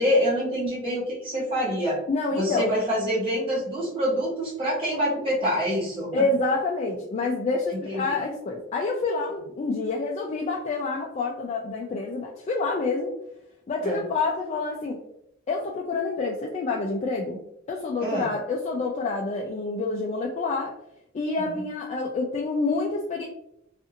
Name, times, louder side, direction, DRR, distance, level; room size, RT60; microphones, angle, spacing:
voice 1, 0.0-2.0 2.3-6.2 7.8-8.2 13.8-14.0 18.0-18.3 21.4-21.6, equal, 30° right, -8 dB, 1.4 m, -26 dB
voice 2, 2.1-2.7 6.1-13.1 13.7-15.0 15.5-17.4 17.7-20.7 21.1-23.3, left 3 dB, 35° left, -1 dB, 0.3 m, -27 dB
2.6 x 2.4 x 2.5 m, 0.78 s
head